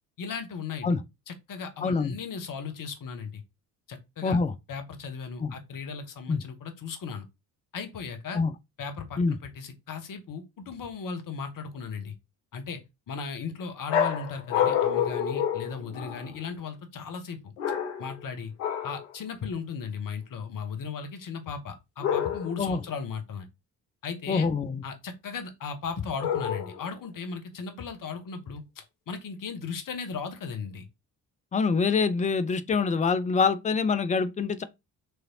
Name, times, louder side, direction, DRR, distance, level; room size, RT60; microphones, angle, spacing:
voice 1, 0.2-1.0 1.3-3.4 3.9-4.4 4.7-7.3 7.7-8.4 8.8-12.1 12.5-12.8 13.1-17.5 18.0-18.5 18.8-23.5 24.0-24.5 24.8-30.9, left 5 dB, 45° left, 1.1 m, -36 dB
voice 2, 1.8-2.1 4.2-4.5 5.4-5.5 6.3-6.4 8.3-8.5 9.2-9.4 22.6-22.8 24.3-24.8 31.5-34.6, left 4 dB, 15° left, 0.4 m, -25 dB
sound 1, 13.9-16.4 17.6-18.2 18.6-19.1 22.0-22.7 26.2-26.9, left 9 dB, 80° left, 0.7 m, -28 dB
4.7 x 3.1 x 2.7 m
figure-of-eight pair, 45°, 47 cm